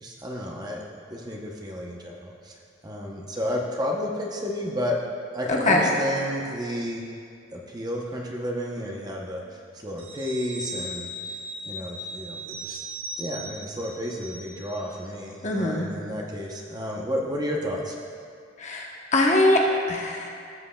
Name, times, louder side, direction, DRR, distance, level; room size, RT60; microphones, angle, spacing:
voice 1, 0.0-2.5 2.8-5.0 5.3-7.0 7.5-11.1 11.7-12.8 13.2-18.0, equal, 20° right, -1 dB, 0.7 m, -31 dB
voice 2, 5.5-5.9 15.4-15.9 18.6-20.3, left 1 dB, 35° left, -1 dB, 0.9 m, -22 dB
sound 1, 10.0-15.1 15.4-15.6, right 1 dB, 80° right, 1.1 m, -38 dB
15.5 x 7.6 x 2.2 m, 2.3 s
head